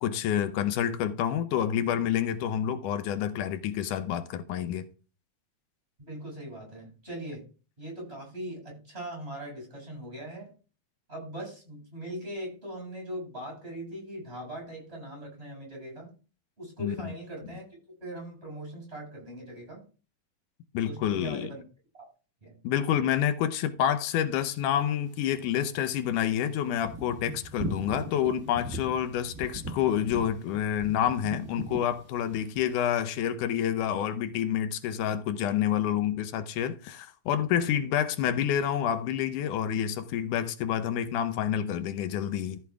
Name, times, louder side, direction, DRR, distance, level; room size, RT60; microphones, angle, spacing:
voice 1, 0.0-4.9 16.8-17.1 20.7-21.5 22.6-42.6, left 10 dB, 90° left, 2.3 m, -28 dB
voice 2, 6.1-7.5 7.8-10.5 11.1-16.1 16.6-19.8 20.8-21.6 21.9-22.1 22.4-22.6, right 1 dB, 20° right, 7.0 m, -40 dB
sound 1, 26.1-26.2 26.6-32.6, right 2 dB, 40° right, 1.2 m, -39 dB
14.0 x 6.1 x 3.6 m
omnidirectional pair, 3.5 m